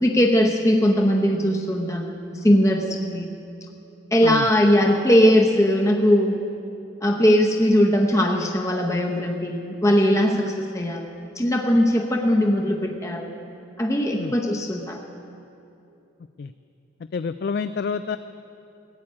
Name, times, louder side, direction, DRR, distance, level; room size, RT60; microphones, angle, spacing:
voice 1, 0.0-3.3 4.1-6.4 7.0-13.3 13.8-15.0, equal, 15° left, 1 dB, 0.8 m, -20 dB
voice 2, 17.1-18.2, left 5 dB, 55° left, 11 dB, 0.3 m, -28 dB
15.0 x 8.6 x 8.6 m, 2.8 s
head